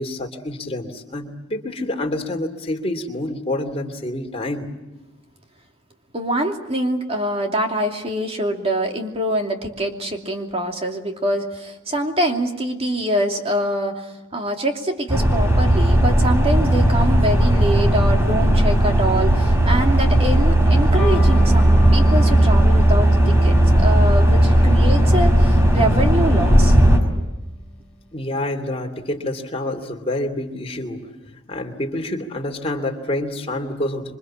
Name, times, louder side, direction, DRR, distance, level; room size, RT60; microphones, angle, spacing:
voice 1, 0.0-4.7 28.1-31.0 31.5-34.2, left 1 dB, 30° left, 4 dB, 2.9 m, -27 dB
voice 2, 6.1-26.8, right 1 dB, 30° right, 3 dB, 2.8 m, -24 dB
sound 1, 15.1-27.0, right 1 dB, 15° right, 4.9 m, -15 dB
Electric guitar, 21.0-28.1, left 1 dB, 5° left, 3.5 m, -35 dB
27.0 x 25.0 x 7.5 m, 1.1 s
head